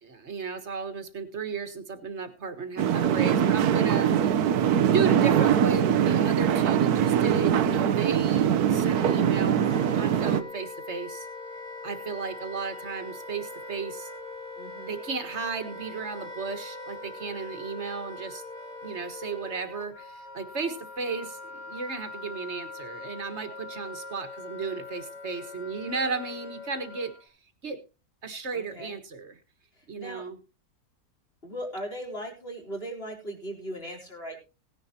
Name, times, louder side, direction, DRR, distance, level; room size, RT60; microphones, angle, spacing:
voice 1, 0.0-4.3 4.8-11.3 11.8-14.1 14.8-18.4 18.8-27.3 27.6-27.8 28.2-29.4 29.9-30.4, right 5 dB, 50° right, 9 dB, 1.8 m, -34 dB
sound 1, 2.8-10.4, right 9 dB, 85° right, 1.3 m, -22 dB
Wind instrument woodwind instrument, 8.4-27.3, left 2 dB, 55° left, 4.6 m, -42 dB
voice 2, 14.6-15.0 28.5-28.9 29.8-30.2 31.4-34.4, equal, 40° left, -1 dB, 4.2 m, -38 dB
18.0 x 10.5 x 2.9 m, 0.29 s
omnidirectional pair, 1.6 m